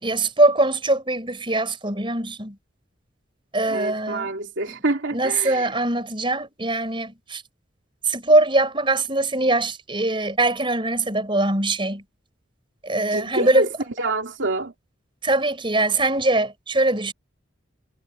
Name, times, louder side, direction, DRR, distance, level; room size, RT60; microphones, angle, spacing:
voice 1, 0.0-2.6 3.5-4.4 5.1-7.4 8.1-12.0 12.8-13.7 15.2-17.1, right 2 dB, 25° right, 5.0 m, -22 dB
voice 2, 3.7-5.7 13.1-13.7 14.0-14.7, right 2 dB, 75° right, 2.4 m, -26 dB
head